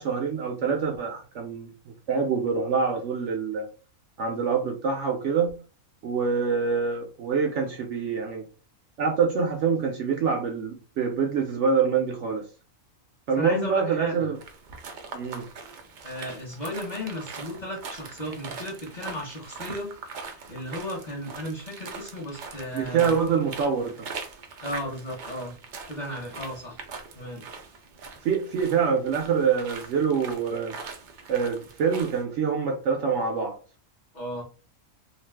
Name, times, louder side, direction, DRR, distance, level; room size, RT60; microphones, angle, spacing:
voice 1, 0.0-3.7 4.2-5.5 6.0-8.4 9.0-12.4 13.3-14.4 15.1-15.5 22.7-24.1 28.2-30.8 31.3-33.6, right 6 dB, 65° right, 0.8 m, -25 dB
voice 2, 13.4-14.4 16.0-19.9 20.3-23.2 24.6-25.5 25.9-26.8 27.1-27.4 34.1-34.4, left 1 dB, 40° left, 0.8 m, -35 dB
sound 1, 14.4-32.2, right 5 dB, 90° right, 0.4 m, -42 dB
2.4 x 2.3 x 3.3 m
omnidirectional pair, 1.5 m